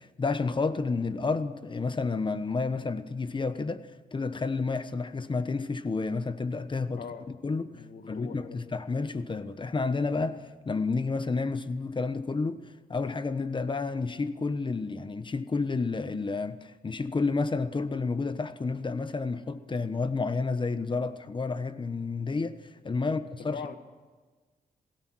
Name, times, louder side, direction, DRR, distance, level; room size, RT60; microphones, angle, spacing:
voice 1, 0.0-7.0 7.4-23.8, left 4 dB, 30° left, 1.1 m, -30 dB
voice 2, 7.0-7.3 7.7-8.6 22.9-23.8, left 5 dB, 70° left, 2.1 m, -42 dB
27.0 x 18.0 x 6.3 m
cardioid pair, 105°, 16 cm